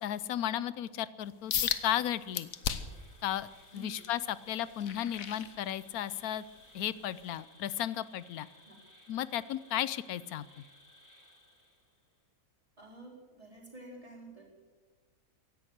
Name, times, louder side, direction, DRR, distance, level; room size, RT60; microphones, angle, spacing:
voice 1, 0.0-1.5 1.8-2.5 3.2-6.4 6.7-8.5 9.1-10.6, left 11 dB, 90° left, 17 dB, 1.1 m, -34 dB
Insect, 1.3-12.1, left 1 dB, 10° left, 2.9 m, -59 dB
sound 1, 1.5-1.8 2.3-3.0 3.5-6.1 6.6-6.8 7.4-7.5, left 8 dB, 70° left, 1.4 m, -35 dB
voice 2, 12.8-14.4, right 2 dB, 25° right, -2 dB, 4.3 m, -50 dB
16.5 x 11.0 x 7.9 m, 1.4 s
omnidirectional pair, 1.5 m